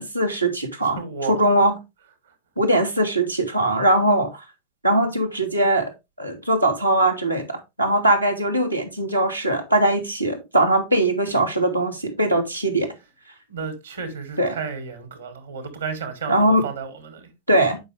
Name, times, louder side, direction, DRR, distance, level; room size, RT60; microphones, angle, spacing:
voice 1, 0.0-1.0 1.3-1.7 2.6-4.4 4.8-5.9 6.2-12.9 14.4-14.5 16.3-16.6 17.5-17.8, right 1 dB, 90° right, 1.9 m, -21 dB
voice 2, 1.0-1.4 13.5-17.3, right 5 dB, 70° right, 2.2 m, -32 dB
9.2 x 5.4 x 3.3 m
figure-of-eight pair, 90°, 0 cm